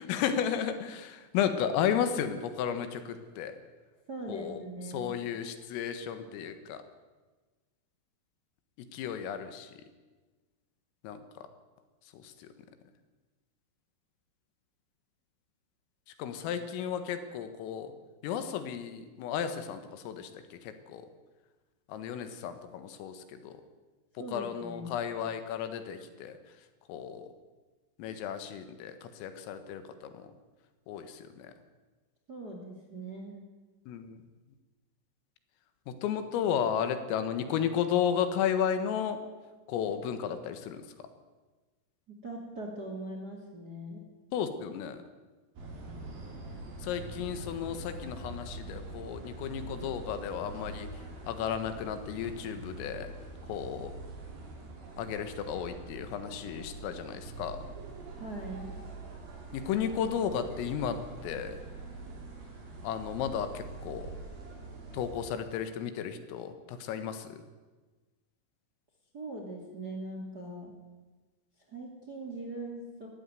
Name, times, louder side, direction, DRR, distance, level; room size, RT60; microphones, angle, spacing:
voice 1, 0.0-3.6 4.3-4.6 4.9-6.8 8.8-9.8 11.0-11.5 12.1-12.5 16.2-17.9 18.2-21.1 21.9-23.6 24.3-26.4 26.9-27.3 28.0-30.3 30.9-31.5 33.9-34.2 35.9-39.2 39.7-40.8 44.3-45.0 46.8-50.9 51.3-53.1 53.5-53.9 55.0-57.6 59.5-61.6 62.8-64.2 64.9-67.4, left 8 dB, 85° left, 9 dB, 4.2 m, -33 dB
voice 2, 4.1-5.1 24.2-25.0 32.3-33.4 42.2-44.0 58.1-58.7 69.1-70.7 71.7-73.1, right 2 dB, 30° right, 1 dB, 2.0 m, -41 dB
sound 1, 45.6-65.3, right 2 dB, 50° right, 4.9 m, -44 dB
20.0 x 14.5 x 9.2 m, 1.3 s
omnidirectional pair, 5.8 m